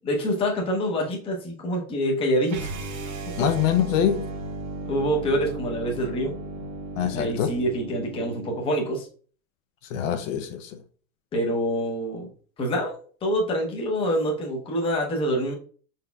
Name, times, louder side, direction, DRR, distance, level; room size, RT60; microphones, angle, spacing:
voice 1, 0.1-2.7 3.4-3.5 4.9-6.3 7.1-9.1 11.3-12.3 12.6-12.9 13.2-15.5, equal, 15° left, 0.7 m, -26 dB
sound 1, 2.5-8.7, right 2 dB, 65° right, 1.4 m, -35 dB
voice 2, 3.4-4.3 7.0-7.5 9.9-10.8, left 9 dB, 60° left, 0.6 m, -24 dB
4.8 x 4.2 x 2.2 m
supercardioid pair, 155°, 44 cm